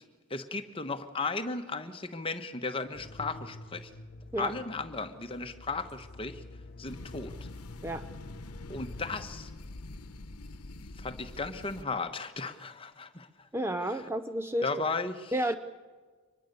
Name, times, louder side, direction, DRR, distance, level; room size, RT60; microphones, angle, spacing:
voice 1, 0.3-3.9 4.4-6.4 6.8-7.3 8.7-9.5 11.0-13.3 14.6-15.3, left 3 dB, 25° left, 8 dB, 1.2 m, -35 dB
sound 1, 2.9-9.3, left 2 dB, 45° left, 0.9 m, -48 dB
sound 2, 6.8-11.8, left 2 dB, 90° left, 1.0 m, -45 dB
voice 2, 13.5-14.7 15.3-15.6, right 1 dB, 10° right, 10 dB, 0.6 m, -31 dB
24.5 x 20.5 x 6.8 m, 1.4 s
head